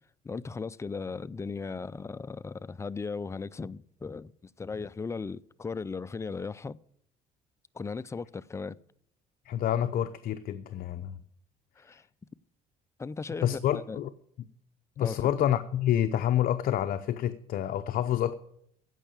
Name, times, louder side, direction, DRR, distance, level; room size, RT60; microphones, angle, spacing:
voice 1, 0.2-6.8 7.7-8.8 11.8-12.0 13.0-14.0 15.0-15.3, left 4 dB, 15° left, 0.4 m, -37 dB
voice 2, 9.5-11.2 13.4-14.1 15.0-18.3, left 11 dB, 60° left, 0.7 m, -28 dB
15.5 x 5.6 x 9.1 m
cardioid pair, 110°, 17 cm